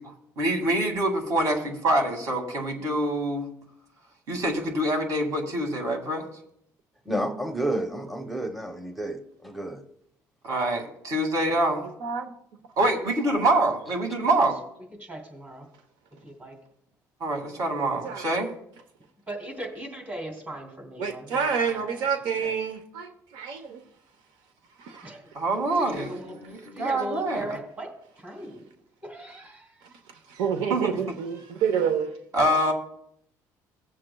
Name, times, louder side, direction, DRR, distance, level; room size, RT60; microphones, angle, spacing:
voice 1, 0.4-3.5 4.3-6.2 10.4-11.9 12.8-14.6 17.2-18.5 25.3-27.4 30.7-31.0 32.3-32.7, right 1 dB, 55° right, 2.1 m, -25 dB
voice 2, 7.1-9.8, right 1 dB, ahead, 0.8 m, -30 dB
voice 3, 12.0-12.3 18.0-18.3 21.0-23.8 24.8-25.1 30.3-32.1, right 6 dB, 85° right, 0.9 m, -28 dB
voice 4, 14.1-14.4 15.0-15.7 16.2-16.6 19.3-22.5 25.0-25.3 25.7-28.7 29.0-29.9, right 1 dB, 25° right, 3.2 m, -39 dB
19.0 x 7.5 x 2.3 m
cardioid pair, 125°, 7 cm